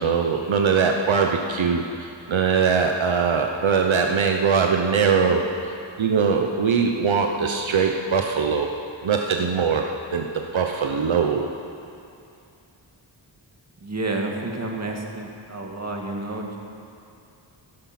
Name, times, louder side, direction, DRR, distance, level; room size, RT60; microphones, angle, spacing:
voice 1, 0.0-5.4 6.0-8.7 9.0-11.5, right 6 dB, 75° right, 3 dB, 0.9 m, -21 dB
voice 2, 13.8-16.6, right 2 dB, 35° right, 0 dB, 2.0 m, -30 dB
15.0 x 13.0 x 5.9 m, 2.6 s
wide cardioid pair, 100°, 47 cm